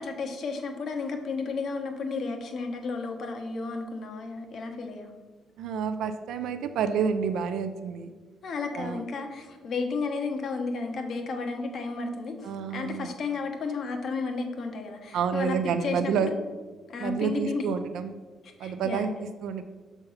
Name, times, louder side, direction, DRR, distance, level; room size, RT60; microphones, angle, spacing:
voice 1, 0.0-5.1 8.4-15.6 15.8-16.3 16.9-17.6 18.6-19.3, left 4 dB, 60° left, 4 dB, 1.0 m, -33 dB
voice 2, 5.6-8.1 8.7-9.0 12.4-13.1 15.1-16.3 17.0-18.2 18.6-19.6, right 6 dB, 80° right, 9 dB, 0.4 m, -29 dB
6.7 x 3.5 x 5.6 m, 1.4 s
cardioid pair, 90°, 0 cm